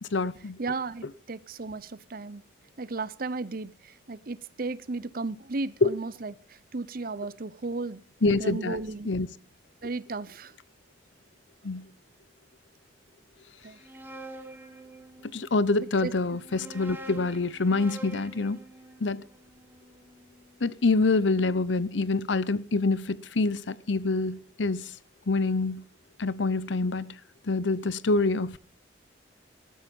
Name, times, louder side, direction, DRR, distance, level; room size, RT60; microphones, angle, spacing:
voice 1, 0.0-0.6 5.8-5.9 8.2-8.8 9.0-9.3 11.6-11.9 15.2-18.6 19.0-19.2 20.6-24.9 25.3-25.8 26.2-27.2 27.5-28.6, left 3 dB, 85° left, 0.8 m, -26 dB
voice 2, 0.6-2.4 2.8-9.1 9.8-10.5 13.6-13.8 15.8-16.1, right 3 dB, 50° right, 0.8 m, -35 dB
sound 1, 13.6-15.5 16.3-20.5, right 2 dB, 10° right, 2.1 m, -46 dB
19.5 x 13.0 x 5.4 m
head